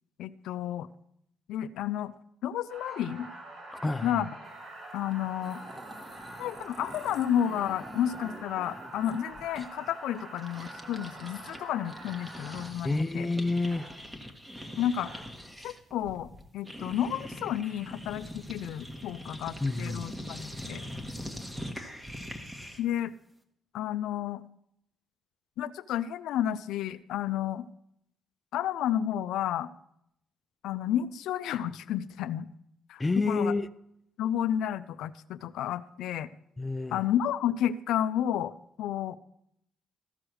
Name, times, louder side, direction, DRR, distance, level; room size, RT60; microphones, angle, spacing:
voice 1, 0.2-0.9 1.5-2.1 2.4-3.3 4.0-4.3 4.9-5.6 6.4-13.3 14.8-15.1 15.6-20.8 22.8-23.1 23.7-24.4 25.6-27.6 28.5-29.7 30.6-32.5 32.9-33.0 33.3-33.5 34.2-36.3 36.9-39.2, left 10 dB, 85° left, 13 dB, 0.4 m, -31 dB
sound 1, 2.7-12.6 13.7-13.9 14.8-15.2, right 2 dB, 70° right, 4.4 m, -45 dB
voice 2, 3.7-4.2 12.8-13.9 19.6-20.2 33.0-33.7 36.6-37.0, left 3 dB, 15° left, 12 dB, 0.5 m, -29 dB
sound 2, 5.1-5.2 5.4-11.6 11.9-23.0, equal, 10° right, 1.3 m, -43 dB
14.5 x 4.8 x 6.2 m, 0.75 s
cardioid pair, 90°, 0 cm